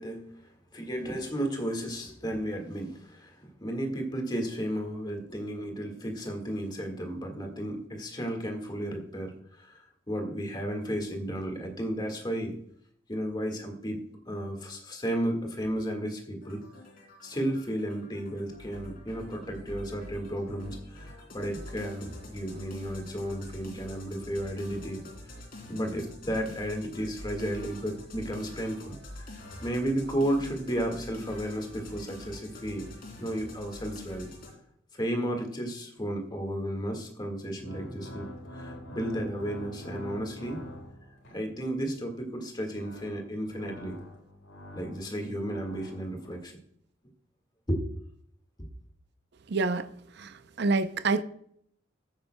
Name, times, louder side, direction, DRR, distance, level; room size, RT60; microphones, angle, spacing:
voice 1, 0.0-12.5 13.1-16.6 17.2-25.1 25.7-32.9 33.2-34.3 34.9-40.6 41.3-44.0 44.7-46.6 47.7-47.8, right 1 dB, 20° left, 1.7 m, -33 dB
sound 1, 16.4-34.5, left 1 dB, 50° left, 3.0 m, -46 dB
sound 2, 37.4-41.5 42.4-46.4, equal, 80° left, 3.8 m, -45 dB
voice 2, 49.5-49.9 50.2-50.3 50.6-51.2, right 3 dB, 55° right, 0.6 m, -26 dB
15.0 x 8.9 x 2.2 m
head